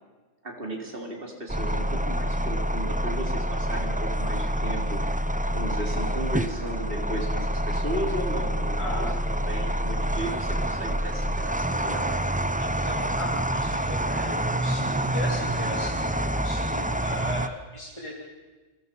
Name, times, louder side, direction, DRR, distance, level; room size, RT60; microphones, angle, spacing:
voice 1, 0.4-5.2 5.5-12.2, right 1 dB, 45° right, 1 dB, 4.1 m, -35 dB
sound 1, 1.5-17.5, right 1 dB, 10° right, 0.6 m, -27 dB
voice 2, 8.8-9.1 12.6-18.1, left 1 dB, 25° left, -4 dB, 3.3 m, -37 dB
29.0 x 22.5 x 5.5 m, 1.3 s
omnidirectional pair, 1.3 m